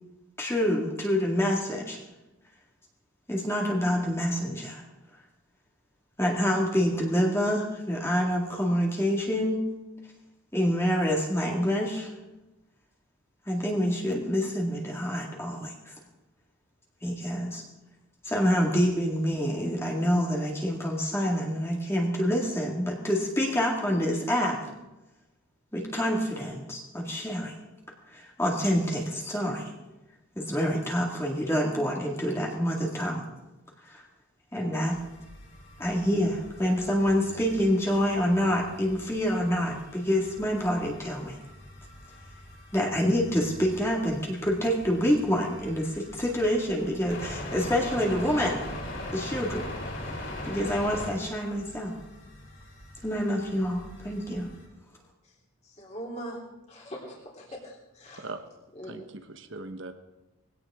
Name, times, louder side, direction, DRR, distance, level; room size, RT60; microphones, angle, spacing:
voice 1, 0.4-2.0 3.3-4.8 6.2-9.6 10.5-12.1 13.5-15.9 17.0-17.6 18.2-24.6 25.7-27.5 28.1-29.7 30.4-33.3 33.8-34.0 34.5-35.0 35.8-41.4 42.7-48.6 49.1-49.7 50.0-50.1 50.4-51.9 53.0-54.5, equal, 10° left, 2.0 m, -27 dB
sound 1, 34.9-54.7, left 1 dB, 60° left, 7.7 m, -42 dB
voice 2, 55.8-56.4 56.7-58.2 58.8-59.0, right 1 dB, 30° left, 3.6 m, -41 dB
voice 3, 58.8-59.9, right 2 dB, 60° right, 1.2 m, -40 dB
20.5 x 17.0 x 3.7 m
head